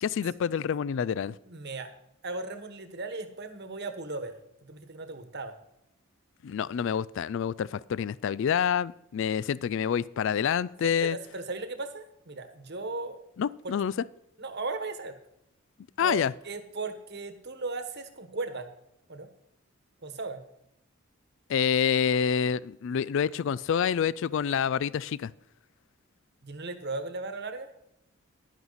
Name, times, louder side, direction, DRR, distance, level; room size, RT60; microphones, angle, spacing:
voice 1, 0.0-1.3 6.4-11.2 13.4-13.9 16.0-16.3 21.5-25.3, left 7 dB, 60° left, 0.3 m, -27 dB
voice 2, 1.4-1.9 2.2-4.3 4.6-5.5 10.8-13.2 13.6-13.7 14.4-15.2 16.0-18.7 19.1-19.3 20.0-20.4 26.4-27.7, right 3 dB, 50° right, 1.3 m, -37 dB
11.0 x 10.5 x 4.0 m
head